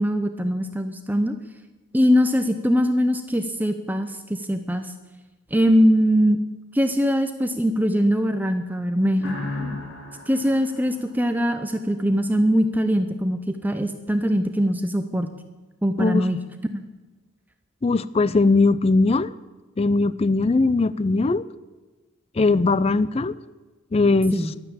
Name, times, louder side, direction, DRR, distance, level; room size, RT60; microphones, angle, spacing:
voice 1, 0.0-1.4 1.9-4.9 5.5-6.4 6.7-9.4 10.3-15.3 15.8-16.4 16.7-16.8 24.3-24.5, equal, 10° right, 7 dB, 0.7 m, -22 dB
sound 1, 9.2-11.9, left 2 dB, 70° left, 4.3 m, -35 dB
voice 2, 17.8-19.3 19.8-21.5 22.4-23.4 23.9-24.4, left 3 dB, 30° left, 17 dB, 0.4 m, -20 dB
13.0 x 12.0 x 8.6 m, 1.2 s
head